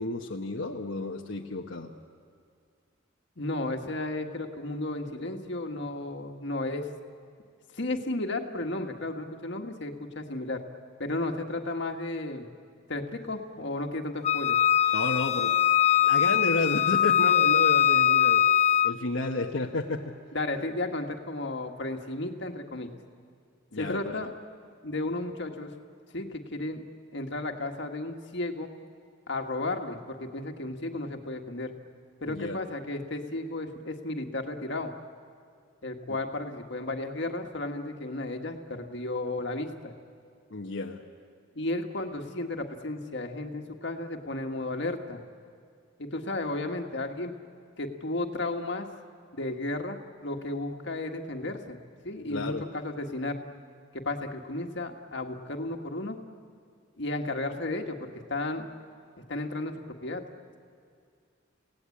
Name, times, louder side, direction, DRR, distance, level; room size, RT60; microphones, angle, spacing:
voice 1, 0.0-1.9 14.9-15.5 16.0-18.4 18.8-20.1 23.7-24.2 32.3-32.6 40.5-41.0 52.3-52.6, left 2 dB, 80° left, 0 dB, 1.1 m, -31 dB
voice 2, 3.4-6.9 7.7-10.6 11.0-12.5 12.9-14.6 20.3-22.9 23.7-24.3 24.8-25.7 26.1-26.8 27.1-28.7 29.3-31.7 32.2-34.9 35.8-39.9 41.5-45.2 46.0-47.3 47.8-48.9 49.3-51.8 52.0-53.4 53.9-56.2 57.0-58.6 59.2-60.2, left 2 dB, 60° left, 4 dB, 1.7 m, -33 dB
Wind instrument woodwind instrument, 14.2-19.0, left 9 dB, 35° left, 0.7 m, -22 dB
30.0 x 17.5 x 8.6 m, 2.3 s
head